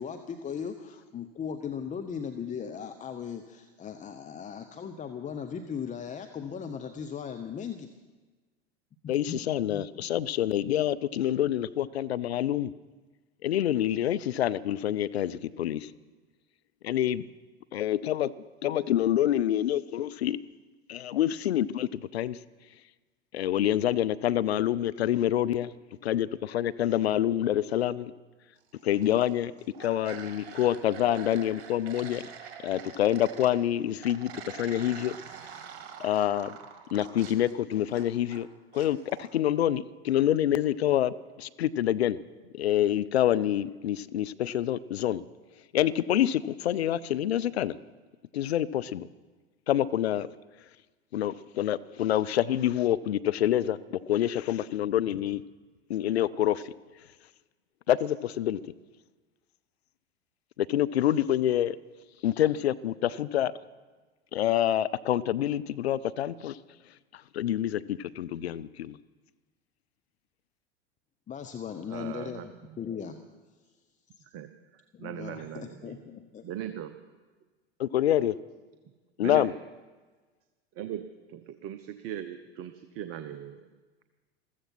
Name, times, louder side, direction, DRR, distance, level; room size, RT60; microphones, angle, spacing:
voice 1, 0.0-7.9 9.2-9.4 9.7-10.1 71.3-73.2 74.9-76.4, left 7 dB, 25° left, 7 dB, 0.8 m, -38 dB
voice 2, 9.1-12.7 13.4-15.9 16.8-17.3 17.7-18.3 18.6-20.4 20.9-22.4 23.3-25.7 26.0-28.1 28.8-29.5 29.8-32.2 32.6-35.2 36.0-36.6 36.9-38.5 38.7-42.2 42.5-45.2 45.7-47.8 48.3-49.1 49.7-50.3 51.1-55.4 55.9-56.6 57.9-58.6 60.6-61.8 62.2-63.5 64.3-66.6 67.1-69.0 77.8-78.3 79.2-79.5, left 11 dB, 75° left, 17 dB, 0.5 m, -27 dB
sound 1, 28.8-29.3 29.6-33.5 34.0-38.4 38.7-39.3, right 8 dB, 60° right, 1.9 m, -45 dB
voice 3, 71.9-72.4 74.3-74.5 75.0-76.0 76.4-76.9 79.2-79.5 80.8-81.0 81.3-83.7, right 11 dB, 45° right, 9 dB, 0.9 m, -38 dB
14.5 x 14.5 x 5.9 m, 1.3 s
figure-of-eight pair, 80°, 32 cm